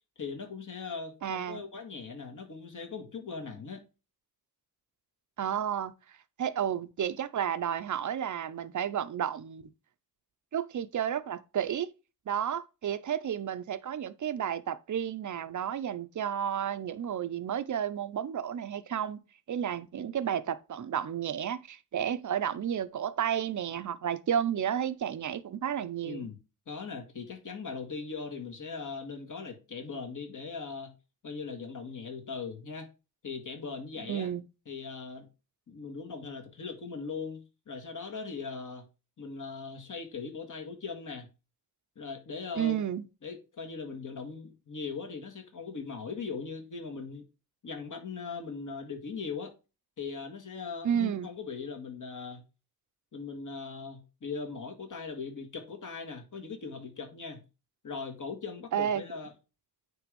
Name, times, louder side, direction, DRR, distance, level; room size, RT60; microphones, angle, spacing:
voice 1, 0.2-3.8 26.0-26.4 26.7-30.9 31.2-32.9 33.2-34.3 34.7-35.3 35.7-38.8 39.2-41.3 42.0-42.8 43.2-47.3 47.6-49.5 50.0-52.4 53.1-57.4 57.8-59.3, left 5 dB, 50° left, 1.9 m, -39 dB
voice 2, 1.2-1.6 5.4-6.0 6.4-9.7 10.5-11.9 12.3-26.3 34.0-34.4 42.6-43.0 50.8-51.3 58.7-59.0, right 9 dB, 50° right, 0.6 m, -32 dB
9.3 x 3.5 x 5.2 m
wide cardioid pair, 150°, 39 cm